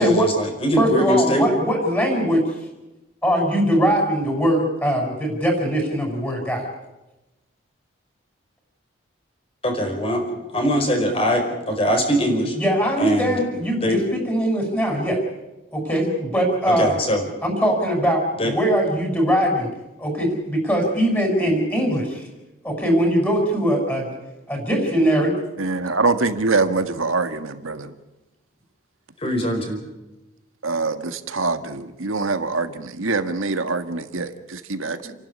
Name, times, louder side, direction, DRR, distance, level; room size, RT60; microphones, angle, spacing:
voice 1, 0.0-1.5 9.6-10.2 10.5-12.6 13.0-13.4 13.8-14.0 16.7-17.2 18.4-18.5 29.2-29.8, equal, 30° left, 4 dB, 4.9 m, -22 dB
voice 2, 0.8-2.4 3.2-6.6 12.6-15.2 15.7-16.9 17.4-19.7 20.0-22.3 22.6-24.1 24.5-25.3, equal, 10° left, 2 dB, 6.4 m, -21 dB
voice 3, 25.6-27.9 30.6-35.1, right 3 dB, 90° right, 9 dB, 1.8 m, -24 dB
29.5 x 12.0 x 9.9 m, 1.0 s
head